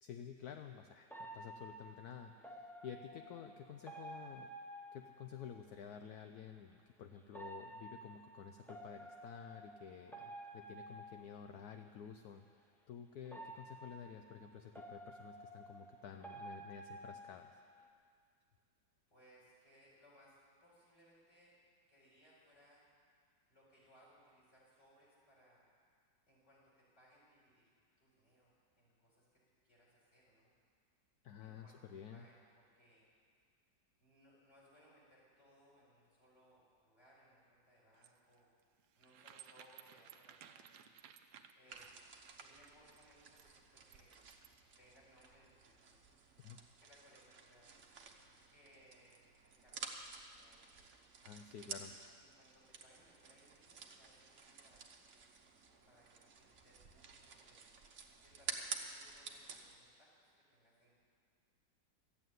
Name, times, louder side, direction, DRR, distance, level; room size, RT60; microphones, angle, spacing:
voice 1, 0.0-4.5 4.9-12.5 12.9-17.5 31.2-32.2 46.4-46.6 51.2-51.9, left 8 dB, 70° left, 6 dB, 1.0 m, -51 dB
sound 1, 1.1-5.7 7.3-11.9 13.2-17.9, right 1 dB, ahead, 0.5 m, -52 dB
voice 2, 13.5-13.8 19.1-21.5 21.9-22.8 23.5-25.6 26.3-27.7 28.0-30.5 31.4-31.8 32.1-33.1 34.0-38.5 39.0-40.9 41.5-41.9 42.4-44.2 44.8-46.0 46.8-50.6 51.6-51.9 52.2-55.0 55.6-57.6 58.2-60.9, equal, 40° left, -7 dB, 4.9 m, -67 dB
sound 2, 37.9-44.7, right 9 dB, 70° right, 1.2 m, -59 dB
sound 3, 41.7-59.8, right 5 dB, 50° right, 1.1 m, -52 dB
13.0 x 8.7 x 9.2 m, 2.1 s
omnidirectional pair, 2.0 m